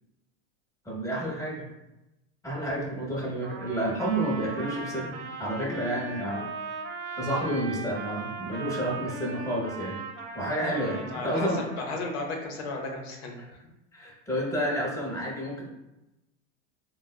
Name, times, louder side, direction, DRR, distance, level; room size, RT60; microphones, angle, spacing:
voice 1, 0.8-1.6 2.4-6.5 7.2-10.0 10.3-11.7 13.9-15.7, right 1 dB, 10° left, -3 dB, 0.8 m, -30 dB
Trumpet, 3.4-11.9, right 4 dB, 75° right, 0.8 m, -38 dB
voice 2, 10.8-13.6, left 3 dB, 65° left, 1 dB, 0.8 m, -35 dB
3.5 x 2.3 x 2.2 m, 0.95 s
hypercardioid pair, 100°, 35 cm